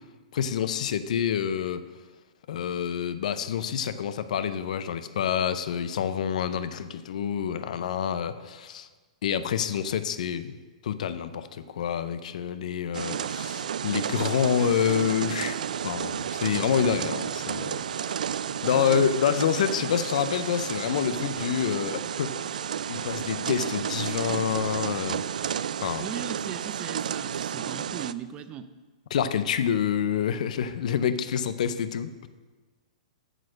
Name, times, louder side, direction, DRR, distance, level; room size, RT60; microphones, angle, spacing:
voice 1, 0.3-1.8 2.5-8.9 9.2-10.5 10.8-18.1 18.6-22.4 22.9-26.1 29.1-32.3, left 8 dB, 65° left, 12 dB, 0.6 m, -27 dB
sound 1, 12.9-28.1, right 8 dB, 80° right, 0.3 m, -32 dB
voice 2, 18.7-19.1 26.0-28.7, right 9 dB, 25° right, 12 dB, 0.5 m, -38 dB
9.0 x 6.4 x 6.4 m, 1.3 s
hypercardioid pair, 130°, 4 cm